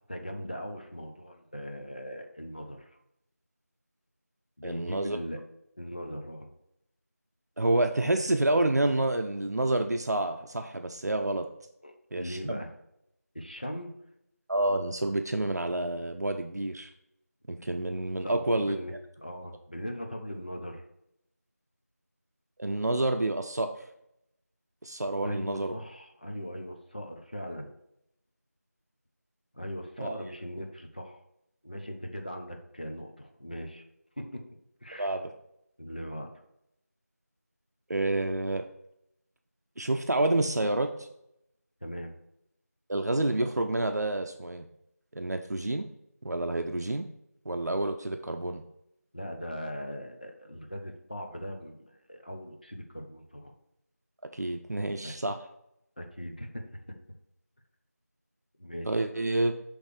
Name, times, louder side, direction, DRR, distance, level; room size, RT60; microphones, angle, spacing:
voice 1, 0.1-2.9 4.6-5.4 5.8-6.5 11.8-12.7 13.3-13.9 18.2-19.0 19.2-20.8 25.2-27.7 29.5-31.2 31.6-33.8 34.2-34.4 34.8-35.1 35.8-36.3 41.8-42.1 49.1-53.5 55.0-55.1 56.0-56.6 58.6-59.0, equal, 35° left, 3 dB, 0.7 m, -39 dB
voice 2, 4.6-5.2 7.6-11.5 12.1-12.6 14.5-16.9 17.5-18.8 22.6-23.7 24.8-25.8 30.0-30.1 35.0-35.3 37.9-38.7 39.8-41.1 42.9-44.7 45.1-45.9 46.2-47.1 47.5-48.6 54.3-55.4 58.9-59.5, right 2 dB, 80° right, 5 dB, 0.6 m, -28 dB
6.3 x 3.2 x 4.9 m, 0.80 s
figure-of-eight pair, 180°, 9 cm